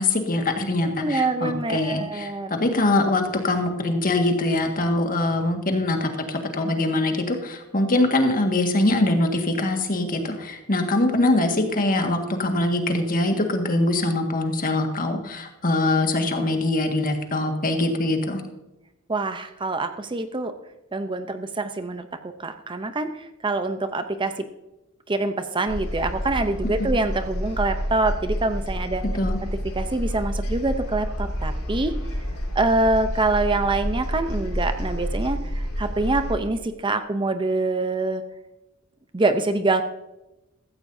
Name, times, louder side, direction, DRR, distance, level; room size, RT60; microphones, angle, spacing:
voice 1, 0.0-18.4 26.8-26.9 29.1-29.4, left 2 dB, 40° left, 4 dB, 1.7 m, -23 dB
voice 2, 1.0-2.6 19.1-20.5 20.9-22.1 22.4-24.5 25.1-29.0 29.7-31.9 32.6-38.2 39.1-39.8, right 2 dB, 25° right, 9 dB, 0.6 m, -25 dB
sound 1, 25.7-36.3, equal, 85° left, 3.6 m, -29 dB
15.5 x 14.0 x 2.7 m, 0.98 s
head